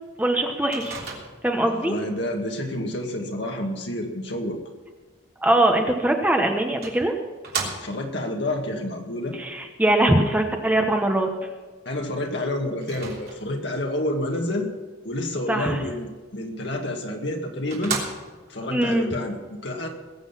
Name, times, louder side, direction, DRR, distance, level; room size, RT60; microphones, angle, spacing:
voice 1, 0.2-1.0 1.4-2.0 5.4-7.1 9.4-11.3 15.5-15.8 18.7-19.1, right 1 dB, 10° right, 3 dB, 1.1 m, -22 dB
Microwave oven, 0.7-1.6 6.0-6.1 6.8-8.2 12.8-13.7 16.8-16.9 17.3-17.4 17.7-18.6, right 4 dB, 50° right, 3.3 m, -33 dB
voice 2, 1.6-4.6 7.6-9.4 11.9-14.7 15.0-18.0 18.5-19.9, left 1 dB, 60° left, 2 dB, 2.1 m, -29 dB
21.0 x 8.0 x 5.8 m, 1.3 s
head